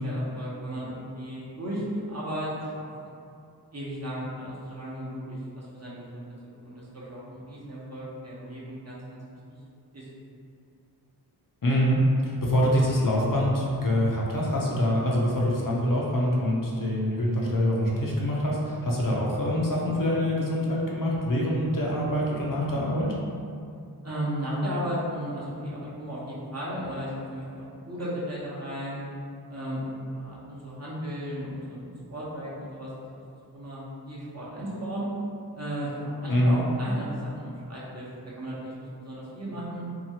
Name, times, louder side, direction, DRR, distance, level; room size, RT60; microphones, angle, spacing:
voice 1, 0.0-2.9 3.7-6.2 6.6-9.2 9.9-10.1 24.0-29.0 29.5-33.2 33.5-35.1 35.5-38.1 38.4-38.7 39.0-39.8, equal, 40° right, -7 dB, 0.8 m, -35 dB
voice 2, 11.6-23.1 36.3-36.6, equal, 55° left, -3 dB, 0.6 m, -25 dB
2.9 x 2.3 x 2.8 m, 2.4 s
wide cardioid pair, 40°, 40 cm